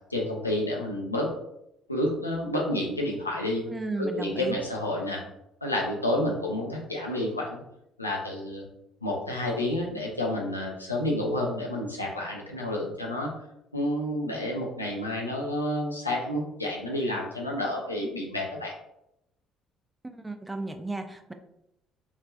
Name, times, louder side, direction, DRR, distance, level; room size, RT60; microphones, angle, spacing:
voice 1, 0.1-1.3 1.9-3.6 4.0-5.2 5.6-7.6 8.0-8.6 9.0-13.3 13.7-18.7, left 1 dB, 85° left, -2 dB, 0.5 m, -29 dB
voice 2, 3.7-4.5 20.0-21.3, right 2 dB, 15° right, 7 dB, 0.3 m, -34 dB
3.1 x 2.5 x 2.2 m, 0.82 s
figure-of-eight pair, 50°, 0 cm